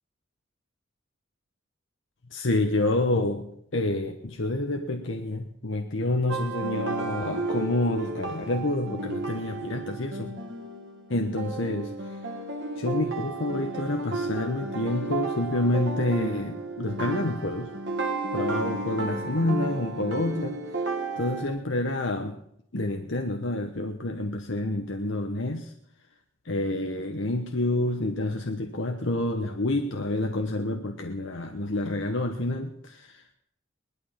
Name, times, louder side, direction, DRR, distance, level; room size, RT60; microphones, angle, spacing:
voice 1, 2.3-10.3 11.1-12.2 12.8-17.7 18.3-20.6 21.2-22.4 22.7-25.7 26.4-33.3, left 2 dB, 65° left, 4 dB, 1.1 m, -28 dB
sound 1, 6.3-21.5, right 3 dB, 55° right, 2.3 m, -33 dB
19.0 x 12.0 x 5.7 m, 0.72 s
head